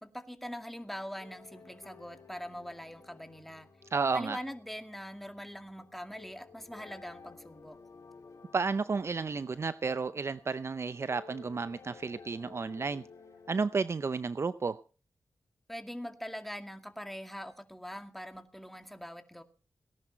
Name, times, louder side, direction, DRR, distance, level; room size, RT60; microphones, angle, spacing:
voice 1, 0.0-3.7 4.1-7.8 15.7-19.4, equal, 5° left, 2.2 m, -43 dB
sound 1, 0.7-13.9, left 5 dB, 65° left, 3.4 m, -55 dB
voice 2, 3.9-4.4 8.5-13.0 13.5-14.8, right 4 dB, 50° right, 0.6 m, -32 dB
18.5 x 11.0 x 4.5 m
cardioid pair, 50°, 6 cm